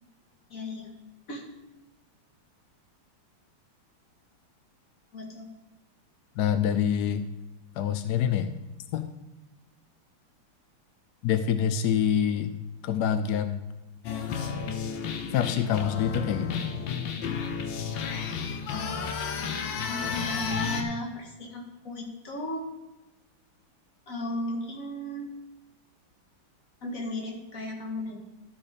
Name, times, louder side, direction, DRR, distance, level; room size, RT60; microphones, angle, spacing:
voice 1, 0.5-0.9 1.3-1.4 5.1-5.5 19.7-22.7 24.1-25.3 26.8-28.2, left 1 dB, 40° left, 0 dB, 2.1 m, -35 dB
voice 2, 6.4-7.3 7.7-8.5 8.9-9.1 11.2-12.5 12.8-13.6 15.3-16.7, left 9 dB, 80° left, 9 dB, 0.9 m, -26 dB
sound 1, 14.0-20.8, left 6 dB, 65° left, 1.4 m, -32 dB
12.5 x 5.7 x 5.1 m, 1.1 s
omnidirectional pair, 2.4 m